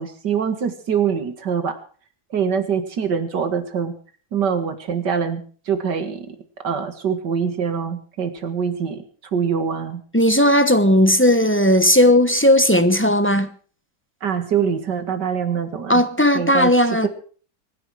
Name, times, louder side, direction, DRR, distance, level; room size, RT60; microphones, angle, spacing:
voice 1, 0.0-1.7 2.3-3.9 4.3-6.4 6.6-9.0 9.3-10.0 14.2-16.0 16.3-16.7, right 7 dB, 85° right, 2.5 m, -24 dB
voice 2, 10.1-13.5 15.9-17.1, left 1 dB, 10° left, 0.9 m, -16 dB
24.5 x 10.0 x 4.8 m
omnidirectional pair, 1.8 m